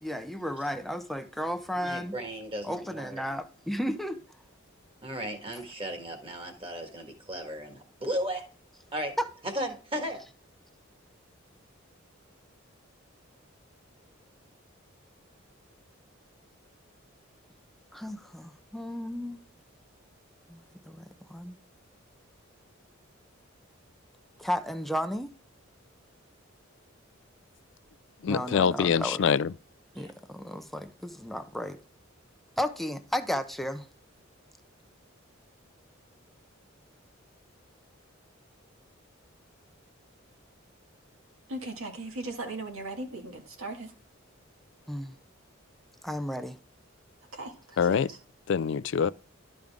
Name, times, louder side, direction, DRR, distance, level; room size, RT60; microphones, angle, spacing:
voice 1, 0.0-2.1 2.6-4.2 9.2-9.3 17.9-19.4 20.5-21.5 24.4-25.3 28.3-29.2 29.9-31.8 32.6-33.9 44.9-45.1 46.0-46.6, equal, ahead, 0.5 m, -33 dB
voice 2, 1.8-3.2 5.0-8.4 8.9-9.1 9.4-10.2 29.9-30.1, equal, 25° right, 1.5 m, -35 dB
voice 3, 28.2-29.5 47.8-48.1 48.5-49.1, left 6 dB, 65° left, 0.3 m, -25 dB
voice 4, 41.5-43.9 47.3-48.2, right 2 dB, 85° right, 1.8 m, -38 dB
12.0 x 5.2 x 3.5 m
head